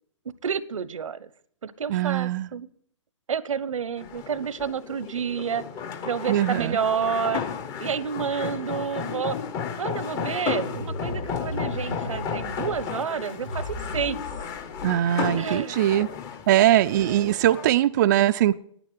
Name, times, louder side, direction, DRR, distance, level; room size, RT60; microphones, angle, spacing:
voice 1, 0.4-1.3 1.6-2.7 3.3-5.6 6.0-7.5 7.8-9.4 9.8-14.2 15.4-15.8 16.9-17.3, right 7 dB, 80° right, 18 dB, 1.0 m, -29 dB
voice 2, 1.9-2.5 6.3-6.8 14.8-16.1 16.5-18.5, right 13 dB, 35° right, 9 dB, 0.4 m, -21 dB
sound 1, 4.0-17.7, left 7 dB, 20° left, 0.9 m, -33 dB
sound 2, 6.8-7.5 8.0-14.9, left 2 dB, 85° left, 3.4 m, -37 dB
9.8 x 9.5 x 9.4 m, 0.65 s
hypercardioid pair, 150°, 16 cm